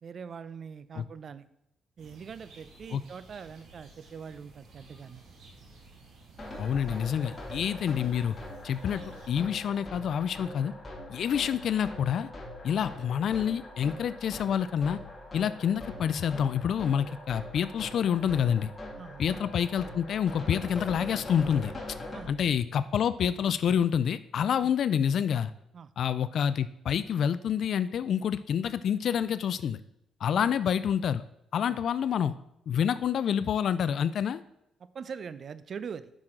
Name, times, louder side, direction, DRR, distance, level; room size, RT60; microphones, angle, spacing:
voice 1, 0.0-1.4 2.0-5.2 19.0-19.2 22.1-22.3 25.7-25.9 30.3-30.5 31.7-31.8 34.8-36.1, right 6 dB, 50° right, 14 dB, 0.5 m, -42 dB
sound 1, 2.0-9.3, right 3 dB, 75° right, 1.9 m, -53 dB
sound 2, 6.4-22.2, left 1 dB, 30° left, 2.2 m, -42 dB
voice 2, 6.6-8.4 8.6-9.0 9.3-10.7 11.1-12.3 12.6-15.0 15.3-18.7 19.2-21.7 22.3-25.5 26.0-29.8 30.2-31.2 31.5-32.3 32.7-34.4, left 8 dB, 65° left, 14 dB, 0.3 m, -27 dB
8.8 x 6.2 x 3.7 m, 0.80 s
cardioid pair, 90°, 0 cm